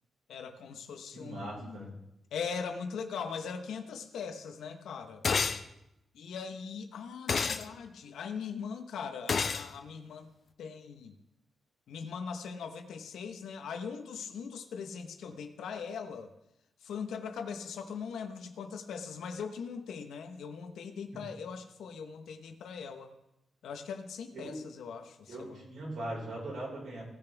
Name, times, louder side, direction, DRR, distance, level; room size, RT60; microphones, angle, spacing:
voice 1, 0.3-1.9 2.3-5.2 6.1-10.3 10.6-11.2 11.9-16.3 16.8-23.1 23.6-25.6, left 6 dB, 90° left, 7 dB, 1.0 m, -40 dB
voice 2, 1.1-1.9 21.1-21.2 24.3-24.6 25.3-27.0, right 1 dB, 70° right, -3 dB, 4.9 m, -40 dB
Hit on table, 5.2-5.6 7.3-7.6 9.3-9.7, left 5 dB, 45° left, 0.6 m, -29 dB
17.5 x 7.0 x 3.5 m, 0.88 s
cardioid pair, 115°, 0 cm